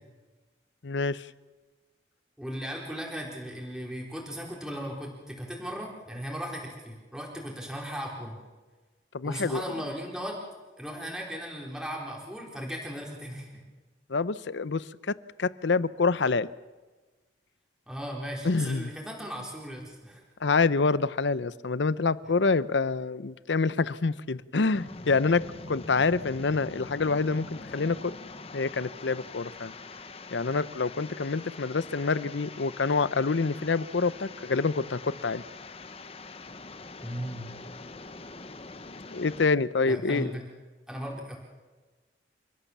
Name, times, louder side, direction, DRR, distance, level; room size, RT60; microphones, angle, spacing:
voice 1, 0.8-1.3 9.1-9.6 14.1-16.5 18.4-18.9 20.4-28.1 28.5-29.7 30.3-35.4 39.1-40.3, left 4 dB, 75° left, 0.7 m, -27 dB
voice 2, 2.4-8.4 9.2-10.4 10.8-13.6 17.9-20.2 37.0-37.5 39.9-40.4 40.9-41.4, equal, 5° right, 4.2 m, -37 dB
sound 1, 24.7-39.5, left 3 dB, 30° left, 0.9 m, -44 dB
30.0 x 14.5 x 7.3 m
head